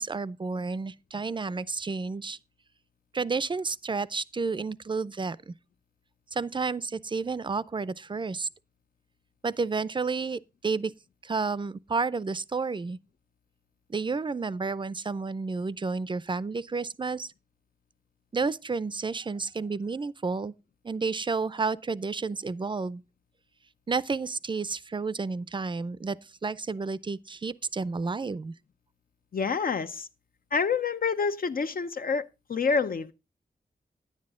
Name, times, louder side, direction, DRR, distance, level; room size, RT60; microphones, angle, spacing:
voice 1, 0.0-2.4 3.1-5.5 6.3-8.5 9.4-10.9 11.2-13.0 13.9-17.3 18.3-20.5 20.8-23.0 23.9-28.5, right 4 dB, 30° right, 0.5 m, -31 dB
voice 2, 29.3-30.1 30.5-33.1, left 5 dB, 70° left, 0.8 m, -27 dB
10.0 x 9.7 x 3.7 m
wide cardioid pair, 100°, 16 cm